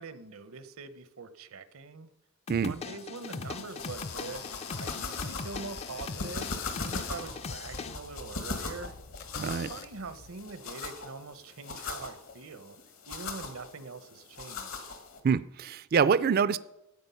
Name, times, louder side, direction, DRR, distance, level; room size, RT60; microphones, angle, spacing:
voice 1, 0.0-2.1 2.7-8.9 9.4-12.8 13.1-14.9, right 4 dB, 80° right, 13 dB, 0.9 m, -43 dB
sound 1, 2.5-8.0, left 4 dB, 30° left, 0.4 m, -40 dB
sound 2, 3.2-15.2, left 4 dB, 75° left, 1.8 m, -40 dB
sound 3, 3.8-10.5, left 7 dB, 50° left, 0.8 m, -47 dB
voice 2, 9.4-9.7 15.2-16.6, right 6 dB, 45° right, 16 dB, 0.4 m, -25 dB
13.0 x 8.7 x 5.6 m, 0.91 s
head